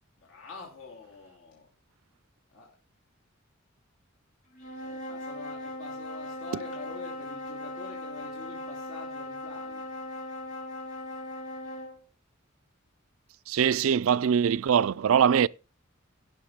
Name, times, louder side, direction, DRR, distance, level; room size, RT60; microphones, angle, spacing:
voice 1, 0.2-1.7 2.5-2.7 4.8-9.9, left 4 dB, 75° left, 2.9 m, -45 dB
sound 1, 4.6-12.0, left 1 dB, 40° left, 5.0 m, -39 dB
voice 2, 13.5-15.5, right 8 dB, 80° right, 0.4 m, -22 dB
17.0 x 5.8 x 3.6 m
head